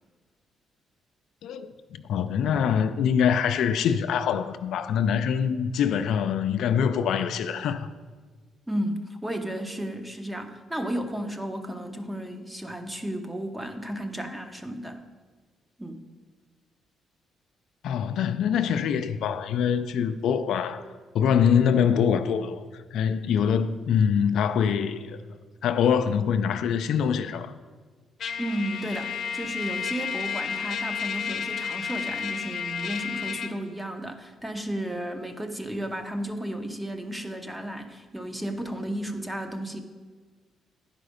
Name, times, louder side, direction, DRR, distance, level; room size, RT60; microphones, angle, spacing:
voice 1, 1.4-7.9 17.8-20.8 21.1-22.6 22.9-25.2 25.6-27.5, left 7 dB, 75° left, 0.4 m, -24 dB
voice 2, 8.7-15.0 15.8-16.0 28.4-39.8, right 1 dB, 10° right, 0.8 m, -33 dB
Trumpet, 28.2-33.5, left 7 dB, 60° left, 0.8 m, -32 dB
10.5 x 4.9 x 5.1 m
cardioid pair, 90°, 0 cm